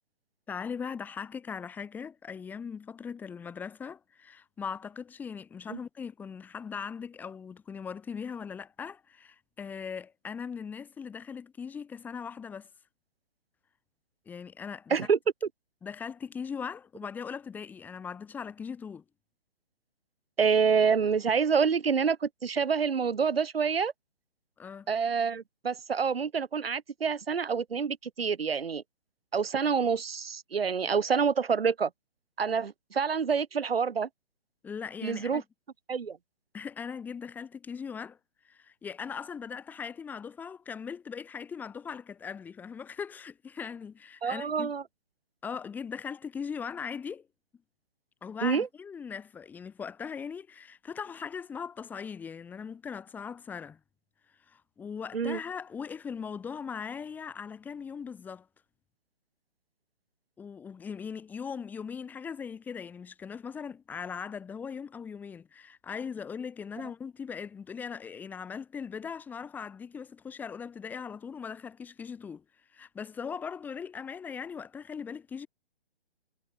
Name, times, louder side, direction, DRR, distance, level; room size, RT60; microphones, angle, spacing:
voice 1, 0.5-12.7 14.3-15.1 15.8-19.0 24.6-24.9 34.6-35.4 36.5-38.2 38.4-44.7 45.4-47.3 48.2-53.8 54.5-58.5 60.4-72.4 72.7-75.5, left 6 dB, 5° left, 4.7 m, -39 dB
voice 2, 20.4-23.9 24.9-28.8 29.3-31.9 32.4-34.1 35.0-35.4 35.9-36.2 44.2-44.8 48.4-48.7 55.1-55.4, right 6 dB, 85° right, 2.1 m, -27 dB
hypercardioid pair, 170°, 29 cm